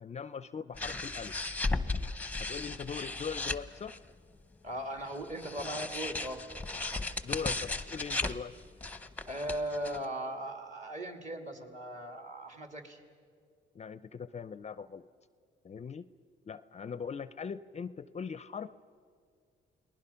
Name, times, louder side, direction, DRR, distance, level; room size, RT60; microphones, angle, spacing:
voice 1, 0.0-1.4 2.4-4.0 7.2-8.5 13.7-15.1 15.6-16.1 16.5-18.7, left 6 dB, 35° left, 15 dB, 0.5 m, -40 dB
sound 1, 0.7-4.1 5.1-10.0, left 3 dB, 10° left, 0.8 m, -36 dB
voice 2, 4.6-6.4 9.3-13.0, right 1 dB, 35° right, 5 dB, 2.7 m, -38 dB
29.0 x 20.0 x 5.7 m, 2.1 s
cardioid pair, 90°, 20 cm